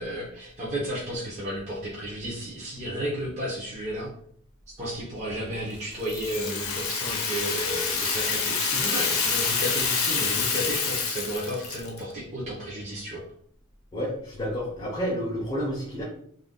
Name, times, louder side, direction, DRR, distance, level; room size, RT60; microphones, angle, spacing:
voice 1, 0.0-4.1 4.8-13.2, equal, 30° right, -5 dB, 0.7 m, -33 dB
Rattle (instrument), 6.0-12.0, left 5 dB, 65° left, 0.6 m, -27 dB
voice 2, 13.9-16.0, equal, 25° left, -3 dB, 0.7 m, -30 dB
2.5 x 2.3 x 3.6 m, 0.63 s
head